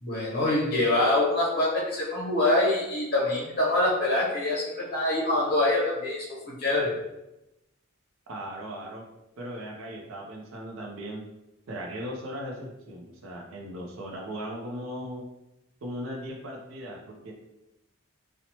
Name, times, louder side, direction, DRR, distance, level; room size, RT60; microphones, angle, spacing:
voice 1, 0.0-6.9, left 2 dB, 45° left, -6 dB, 0.7 m, -25 dB
voice 2, 8.3-9.0 9.4-11.2 11.7-15.2 15.8-17.3, equal, 70° right, 0 dB, 0.4 m, -38 dB
2.8 x 2.0 x 2.8 m, 0.93 s
head